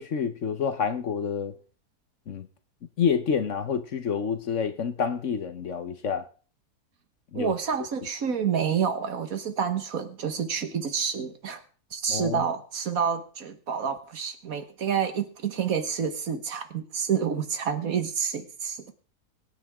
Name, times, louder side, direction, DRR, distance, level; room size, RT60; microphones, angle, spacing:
voice 1, 0.0-1.5 2.3-2.5 3.0-6.3 7.3-7.5 12.1-12.4, left 6 dB, 55° left, 1.2 m, -28 dB
voice 2, 7.3-11.6 11.9-18.9, right 7 dB, 60° right, 1.7 m, -28 dB
23.5 x 9.0 x 3.6 m
omnidirectional pair, 1.7 m